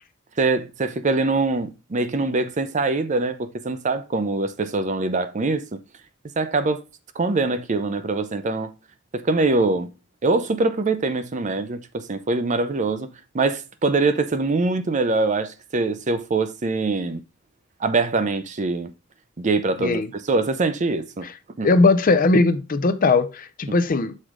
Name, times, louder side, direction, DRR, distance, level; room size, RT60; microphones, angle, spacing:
voice 1, 0.4-5.8 6.4-6.8 7.2-8.7 9.1-9.9 10.2-17.2 17.8-18.9 19.4-20.0 20.3-21.3 21.6-21.7, right 3 dB, 35° right, 0.5 m, -23 dB
voice 2, 19.8-20.1 21.2-21.3 21.6-24.2, left 3 dB, 45° left, 0.5 m, -19 dB
6.4 x 3.8 x 4.8 m
head